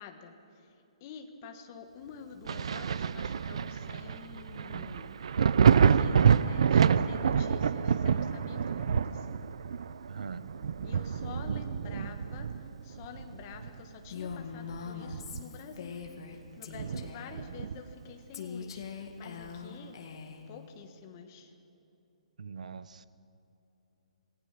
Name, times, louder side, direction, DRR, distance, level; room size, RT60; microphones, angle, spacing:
voice 1, 0.0-5.1 5.4-9.4 10.8-20.0 20.5-21.5, left 6 dB, 20° left, 5 dB, 1.4 m, -49 dB
Thunder, 2.5-13.8 14.2-15.7 16.1-16.2 16.7-18.0 19.4-19.5, right 7 dB, 50° right, 0.6 m, -28 dB
voice 2, 10.1-10.6 22.4-23.1, right 5 dB, 85° right, 15 dB, 1.0 m, -42 dB
Female speech woman speaking, 14.1-16.4 16.6-17.4 18.3-20.5, left 6 dB, 40° left, 1.8 m, -42 dB
27.0 x 19.5 x 6.0 m, 2.9 s
hypercardioid pair, 180°, 4 cm